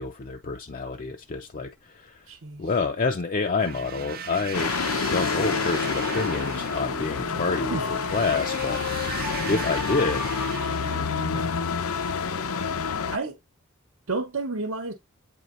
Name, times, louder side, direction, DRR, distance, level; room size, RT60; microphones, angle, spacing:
voice 1, 0.0-2.3 2.6-4.8 5.0-8.8 9.5-10.4, left 4 dB, 40° left, 0.5 m, -28 dB
voice 2, 2.3-2.7 7.7-7.8 11.3-11.5 13.1-13.4 14.1-14.9, right 3 dB, 65° right, 1.1 m, -31 dB
sound 1, 3.6-11.3, right 7 dB, 40° right, 0.6 m, -38 dB
sound 2, 4.5-13.2, left 5 dB, 80° left, 0.8 m, -28 dB
8.5 x 4.7 x 2.5 m
head